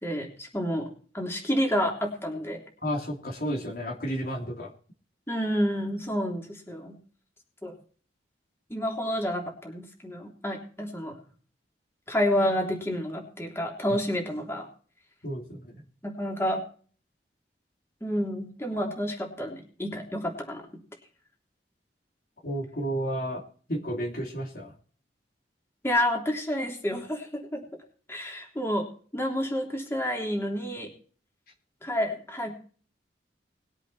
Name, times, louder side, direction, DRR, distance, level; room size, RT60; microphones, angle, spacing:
voice 1, 0.0-0.9 1.1-2.6 5.3-7.0 7.6-7.7 8.7-11.2 12.1-14.7 16.0-16.6 18.0-20.6 25.8-27.6 28.1-28.8 29.1-30.9 31.8-32.5, equal, 15° left, 0 dB, 3.4 m, -29 dB
voice 2, 2.8-4.7 15.2-15.8 22.4-23.4 23.7-24.7, equal, 55° left, -1 dB, 3.1 m, -32 dB
21.0 x 8.2 x 4.2 m, 0.42 s
head